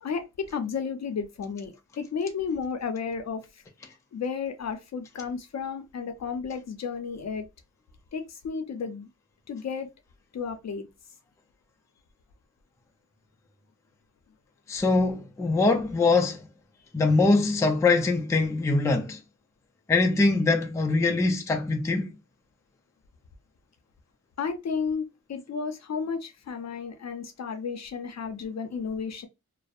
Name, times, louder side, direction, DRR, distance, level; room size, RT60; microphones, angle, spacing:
voice 1, 0.0-3.6 4.1-7.5 8.1-9.1 9.5-9.9 10.3-10.9 24.4-29.3, left 5 dB, 60° left, 0.6 m, -33 dB
voice 2, 14.7-16.5 16.9-19.2 19.9-22.1, left 3 dB, 10° left, 0.3 m, -23 dB
2.6 x 2.0 x 2.3 m
wide cardioid pair, 130°, 31 cm